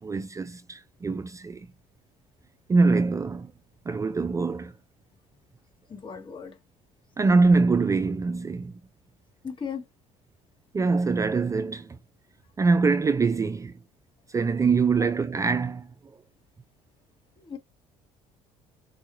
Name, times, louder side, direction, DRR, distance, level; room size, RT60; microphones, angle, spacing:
voice 1, 0.0-1.7 2.7-3.5 3.9-4.7 7.2-8.7 10.7-12.0 12.6-13.7 14.3-15.9, right 4 dB, 20° right, 0.4 m, -24 dB
voice 2, 5.9-6.6 9.4-9.8 15.0-15.1 17.4-17.6, left 6 dB, 35° left, 1.6 m, -37 dB
4.5 x 2.5 x 3.1 m
supercardioid pair, 85°, 14 cm